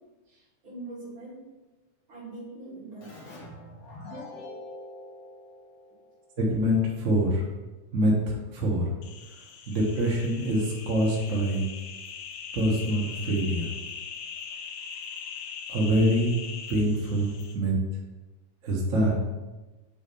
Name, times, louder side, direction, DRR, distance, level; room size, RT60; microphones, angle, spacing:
voice 1, 0.3-1.4 2.1-3.3, right 2 dB, 40° right, -6 dB, 3.5 m, -42 dB
Keyboard (musical), 3.0-6.4, left 1 dB, 55° left, 2.5 m, -44 dB
voice 2, 6.4-7.4 7.9-8.8 9.7-11.7 12.5-13.6 15.7-16.4 16.7-17.7 18.6-19.1, equal, 75° right, -3 dB, 0.7 m, -25 dB
sound 1, 9.0-17.5, left 6 dB, 75° left, 2.4 m, -41 dB
8.0 x 4.2 x 5.3 m, 1.2 s
omnidirectional pair, 3.8 m